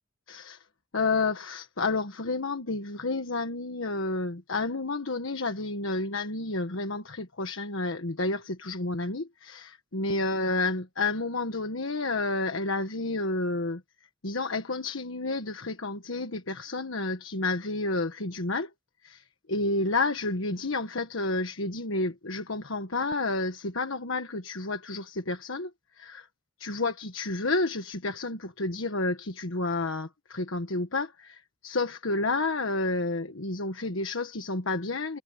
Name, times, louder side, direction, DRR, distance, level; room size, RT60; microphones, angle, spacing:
voice 1, 0.3-0.6 0.9-13.8 14.2-18.7 19.0-25.7 26.0-26.3 26.6-35.2, left 3 dB, 90° left, 1.4 m, -30 dB
head